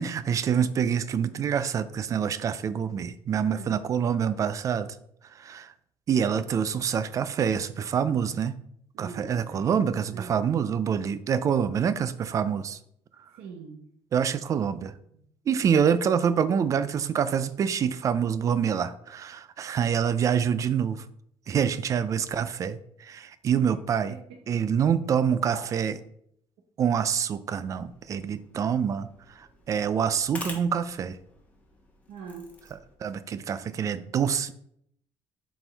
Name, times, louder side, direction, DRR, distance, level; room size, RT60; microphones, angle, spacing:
voice 1, 0.0-4.9 5.3-5.7 6.1-8.5 9.0-12.8 14.1-14.9 15.5-21.0 21.5-24.1 24.5-25.9 26.8-29.1 29.4-31.2 33.0-34.5, right 7 dB, 30° right, 15 dB, 0.3 m, -26 dB
voice 2, 3.4-3.8 8.9-10.5 13.3-13.9 15.1-15.3 23.5-23.8 24.1-24.9 25.5-25.8 32.1-32.5, right 5 dB, 80° right, 2 dB, 1.0 m, -43 dB
sound 1, 27.5-33.0, left 2 dB, 15° left, 1.0 m, -47 dB
7.4 x 4.4 x 3.4 m, 0.71 s
cardioid pair, 165°, 10 cm